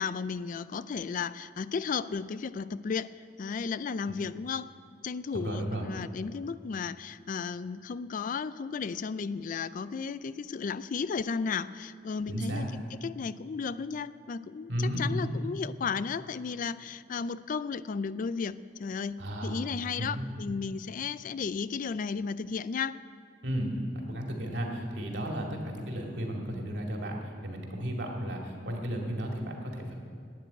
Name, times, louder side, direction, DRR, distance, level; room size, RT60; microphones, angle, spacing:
voice 1, 0.0-3.1 3.4-4.7 5.0-12.7 13.0-14.7 15.0-23.0, left 5 dB, 45° left, 15 dB, 0.4 m, -34 dB
voice 2, 5.3-5.9 12.3-12.7 14.7-15.3 19.2-19.7 20.0-20.3 23.4-29.9, equal, 70° right, 0 dB, 2.4 m, -34 dB
12.5 x 9.5 x 9.1 m, 2.2 s
head